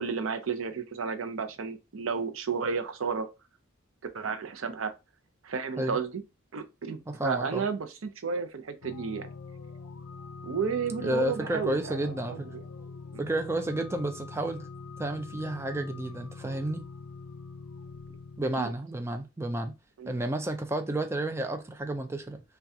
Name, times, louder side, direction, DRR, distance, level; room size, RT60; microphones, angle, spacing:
voice 1, 0.0-3.3 4.1-4.9 5.4-6.2 6.5-9.3 10.4-12.6 13.1-13.2 18.6-18.7 20.0-20.1, right 5 dB, 70° right, 0.5 m, -32 dB
voice 2, 7.1-7.7 11.0-12.5 13.2-14.7 15.0-16.8 18.4-19.7 20.1-22.4, right 1 dB, 10° right, 0.4 m, -31 dB
sound 1, 8.8-18.4, left 4 dB, 70° left, 0.4 m, -44 dB
5.6 x 2.3 x 2.7 m
head